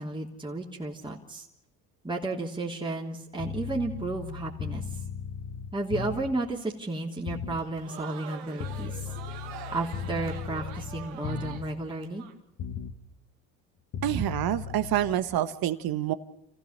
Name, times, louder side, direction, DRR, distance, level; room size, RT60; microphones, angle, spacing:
voice 1, 0.0-1.5 2.0-4.8 5.7-9.1 9.7-12.2, right 2 dB, 10° right, -2 dB, 3.0 m, -33 dB
sound 1, 3.4-6.5 7.3-7.7 8.6-11.8 12.6-13.0 13.9-15.2, left 6 dB, 50° left, 2.1 m, -37 dB
Crowd, 7.5-12.3, right 9 dB, 75° right, 2.0 m, -44 dB
voice 2, 14.0-16.1, right 12 dB, 50° right, 13 dB, 1.4 m, -27 dB
28.5 x 15.5 x 6.7 m, 0.87 s
hypercardioid pair, 70°, 45 cm